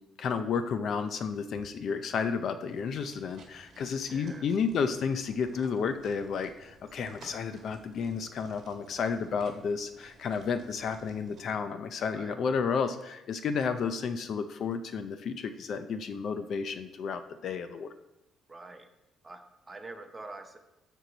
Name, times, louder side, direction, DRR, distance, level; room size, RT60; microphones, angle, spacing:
voice 1, 0.2-17.9, left 6 dB, 45° left, 10 dB, 0.4 m, -32 dB
sound 1, 2.7-11.5, right 3 dB, 45° right, 1.9 m, -56 dB
voice 2, 4.1-4.5 12.1-12.4 18.5-18.9 19.2-20.6, right 2 dB, 15° right, 5 dB, 0.7 m, -45 dB
13.5 x 4.6 x 3.9 m, 0.93 s
cardioid pair, 170°, 0 cm